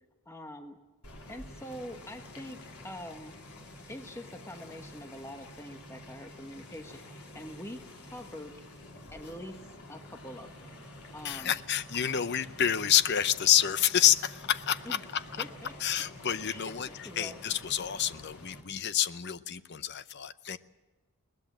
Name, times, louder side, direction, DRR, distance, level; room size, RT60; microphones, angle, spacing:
voice 1, 0.2-0.8 1.3-3.5 3.9-8.5 9.1-10.8 11.1-11.6 14.9-15.0 15.4-15.7 16.5-16.7 17.0-17.4, left 1 dB, 10° left, 5 dB, 1.2 m, -44 dB
sound 1, 1.0-18.6, left 1 dB, 90° left, 3.9 m, -49 dB
voice 2, 11.2-15.2 15.8-20.6, left 10 dB, 50° left, 13 dB, 0.7 m, -28 dB
21.0 x 19.0 x 7.4 m, 1.2 s
head